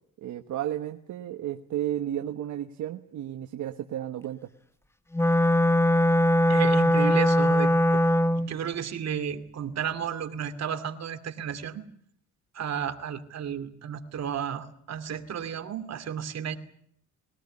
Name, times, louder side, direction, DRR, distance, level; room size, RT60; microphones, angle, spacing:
voice 1, 0.2-4.4, right 11 dB, 75° right, 6 dB, 1.3 m, -33 dB
Wind instrument woodwind instrument, 5.1-8.5, left 1 dB, 10° left, 0.9 m, -21 dB
voice 2, 6.5-8.1 8.4-11.8 12.5-16.6, right 8 dB, 60° right, 7 dB, 2.5 m, -33 dB
21.5 x 18.0 x 9.7 m, 0.68 s
cardioid pair, 90°, 30 cm